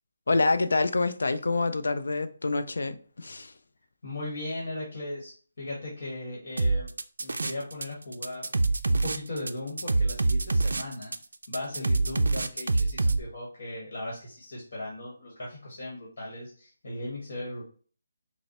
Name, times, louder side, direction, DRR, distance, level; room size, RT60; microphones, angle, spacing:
voice 1, 0.3-3.5, left 3 dB, 80° left, 0.4 m, -26 dB
voice 2, 4.0-6.9 7.2-8.5 8.9-11.1 11.5-17.7, left 1 dB, 55° left, 1.2 m, -37 dB
sound 1, 6.6-7.8 8.1-13.2, right 2 dB, 85° right, 0.4 m, -25 dB
5.0 x 2.0 x 2.9 m
hypercardioid pair, 165°, 0 cm